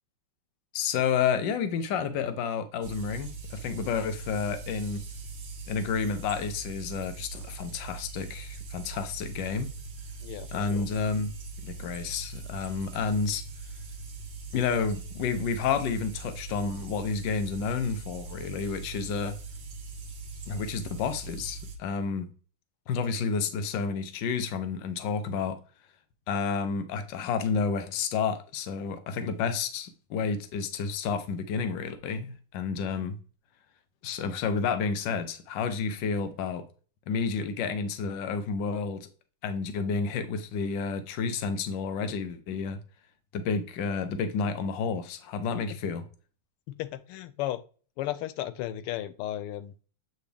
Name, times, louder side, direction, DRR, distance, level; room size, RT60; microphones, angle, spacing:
voice 1, 0.7-5.0 5.7-9.7 10.5-13.4 14.5-19.4 20.5-22.3 22.9-25.6 26.3-33.2 34.0-36.6 37.1-39.1 39.4-42.8 43.3-46.1, left 5 dB, 65° left, 1.4 m, -30 dB
sound 1, 2.8-21.8, right 4 dB, 45° right, 0.8 m, -41 dB
voice 2, 10.2-10.9 46.7-47.6 48.0-49.7, left 13 dB, 85° left, 1.5 m, -34 dB
8.3 x 4.1 x 3.4 m
omnidirectional pair, 2.4 m